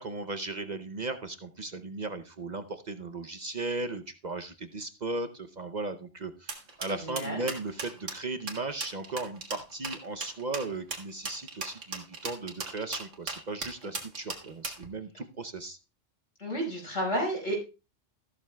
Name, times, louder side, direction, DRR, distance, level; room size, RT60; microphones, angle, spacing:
voice 1, 0.0-15.8, right 3 dB, 45° right, 9 dB, 0.7 m, -36 dB
sound 1, 6.5-14.9, right 3 dB, 80° right, 2.1 m, -37 dB
voice 2, 6.9-7.4 16.4-17.6, equal, 90° left, 1 dB, 5.5 m, -31 dB
14.0 x 12.5 x 2.3 m, 0.29 s
omnidirectional pair, 1.3 m